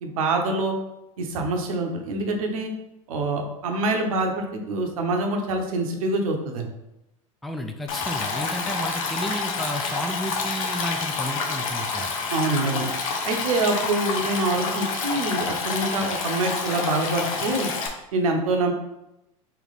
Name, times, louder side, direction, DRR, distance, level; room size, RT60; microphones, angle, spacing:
voice 1, 0.0-0.7 1.2-2.7 3.1-6.7 12.3-12.9 13.2-17.7 18.1-18.7, right 2 dB, 75° right, 3 dB, 0.8 m, -25 dB
voice 2, 7.4-12.1, equal, ahead, 4 dB, 0.4 m, -32 dB
Stream, 7.9-17.9, left 4 dB, 75° left, 0.7 m, -28 dB
3.2 x 2.9 x 3.9 m, 0.90 s
hypercardioid pair, 85°, 18 cm